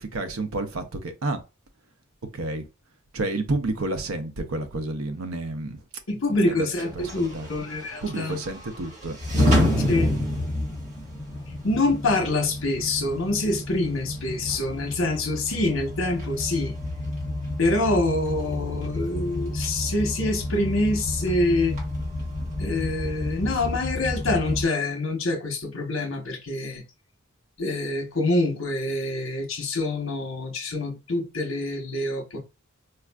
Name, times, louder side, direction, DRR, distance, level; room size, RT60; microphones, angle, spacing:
voice 1, 0.0-1.4 2.3-2.7 3.1-5.8 6.4-6.7 7.0-7.5 8.0-9.7, right 2 dB, 85° right, 0.6 m, -30 dB
voice 2, 6.1-8.4 9.9-10.1 11.6-16.7 17.6-21.8 22.6-26.8 27.6-32.4, left 2 dB, 65° left, 1.0 m, -26 dB
sound 1, 6.7-24.6, left 1 dB, 35° right, 1.4 m, -29 dB
4.5 x 2.4 x 2.2 m
head